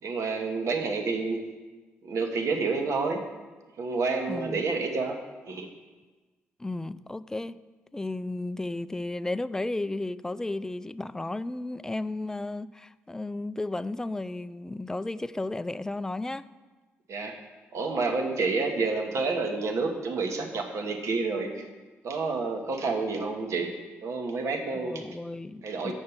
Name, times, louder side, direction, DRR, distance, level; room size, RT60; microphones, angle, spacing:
voice 1, 0.0-1.4 2.0-3.2 3.8-5.2 5.4-5.7 17.1-17.3 17.7-21.6 22.0-23.7 24.0-25.0 25.6-25.9, right 4 dB, 60° right, 1.2 m, -29 dB
voice 2, 4.3-4.7 6.6-7.6 7.9-16.5 24.7-25.9, left 2 dB, 10° left, 0.3 m, -33 dB
6.6 x 5.3 x 7.0 m
hypercardioid pair, 45°, 6 cm